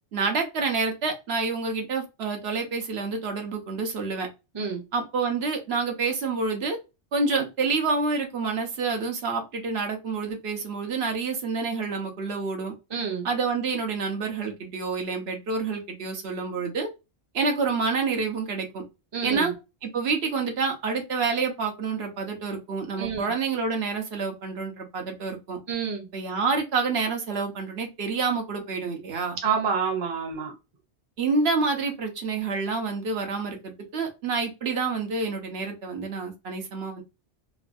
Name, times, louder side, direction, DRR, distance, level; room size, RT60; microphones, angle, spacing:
voice 1, 0.1-4.3 4.9-6.8 7.1-12.7 13.2-16.9 17.3-18.8 19.2-19.5 19.8-25.6 26.1-29.4 31.2-37.0, right 4 dB, 75° right, 4 dB, 1.0 m, -28 dB
voice 2, 12.9-13.3 19.1-19.5 23.0-23.3 25.7-26.1 29.4-30.5, right 6 dB, 30° right, 1 dB, 0.7 m, -28 dB
3.2 x 2.2 x 2.5 m, 0.25 s
omnidirectional pair, 1.1 m